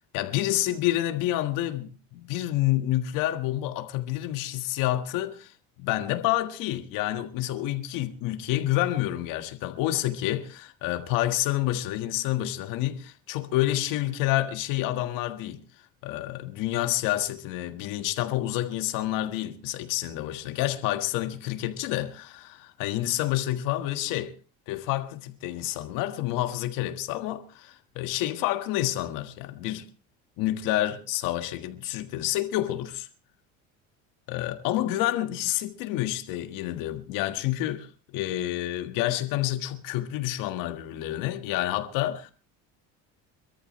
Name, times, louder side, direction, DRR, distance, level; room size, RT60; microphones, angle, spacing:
voice 1, 0.1-15.6 16.0-24.3 24.7-29.8 30.4-33.1 34.3-42.3, left 14 dB, 75° left, 1.7 m, -28 dB
23.5 x 13.5 x 3.2 m
cardioid pair, 120°, 33 cm